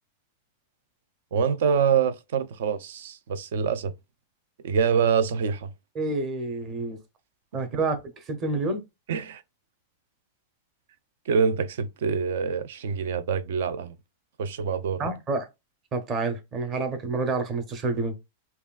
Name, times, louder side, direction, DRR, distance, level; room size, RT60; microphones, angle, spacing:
voice 1, 1.3-3.9 4.6-5.7 7.7-7.8 9.1-9.4 11.3-14.0 14.4-15.1, right 6 dB, 65° right, 0.5 m, -25 dB
voice 2, 5.9-7.0 7.5-8.8 15.0-15.5 15.9-18.1, right 3 dB, 20° right, 0.8 m, -28 dB
5.6 x 2.4 x 2.4 m
supercardioid pair, 170°, 0 cm